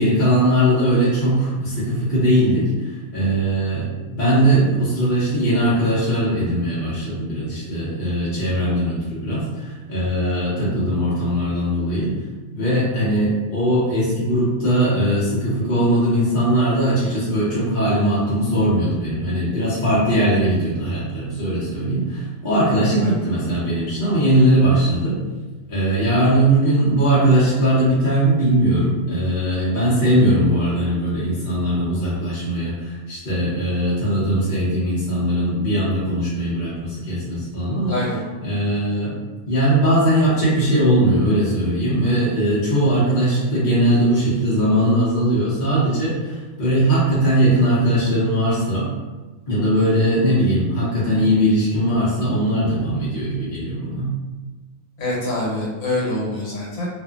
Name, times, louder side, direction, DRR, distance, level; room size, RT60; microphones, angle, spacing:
voice 1, 0.0-12.1 12.5-25.2 25.7-38.0 38.4-39.1 39.5-48.9 49.5-54.1, right 1 dB, 45° left, -9 dB, 0.7 m, -20 dB
voice 2, 37.9-38.2 55.0-56.9, left 1 dB, 75° left, -5 dB, 1.3 m, -25 dB
2.6 x 2.5 x 2.4 m, 1.2 s
omnidirectional pair, 1.5 m